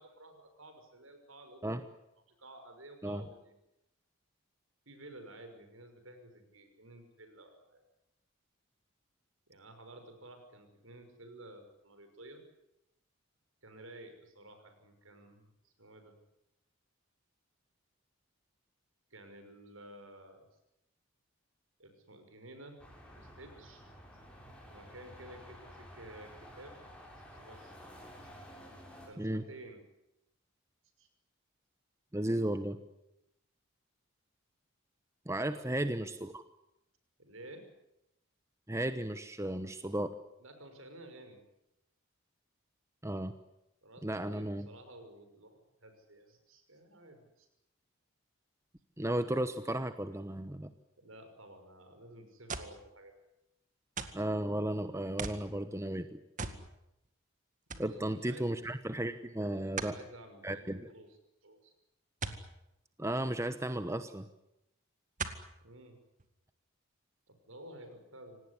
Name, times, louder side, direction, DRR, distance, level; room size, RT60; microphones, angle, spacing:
voice 1, 0.0-1.9 2.3-3.5 4.9-7.8 9.5-12.4 13.6-16.2 19.1-20.4 21.8-22.8 23.1-23.9 24.7-26.8 27.2-28.0 29.1-29.8 31.0-31.1 35.4-35.6 37.2-37.6 40.4-41.4 43.8-47.5 51.0-53.2 57.7-58.5 59.5-61.2 61.4-61.7 65.6-66.0 67.3-68.4, right 1 dB, 70° right, 7 dB, 6.0 m, -53 dB
sound 1, 22.8-29.1, equal, 5° left, 6.2 m, -52 dB
voice 2, 32.1-32.8 35.3-36.4 38.7-40.1 43.0-43.3 44.0-44.7 49.0-50.7 54.1-56.2 57.8-60.0 60.4-60.9 63.0-64.3, right 1 dB, 15° right, 10 dB, 1.0 m, -34 dB
sound 2, 52.5-52.8 54.0-54.3 55.2-55.5 56.4-56.7 57.0-57.1 57.7-57.9 59.8-60.0 62.2-62.5 63.9-64.0 65.2-65.5 66.2-66.3, right 4 dB, 35° right, 1.9 m, -39 dB
26.5 x 18.5 x 10.0 m, 0.86 s
head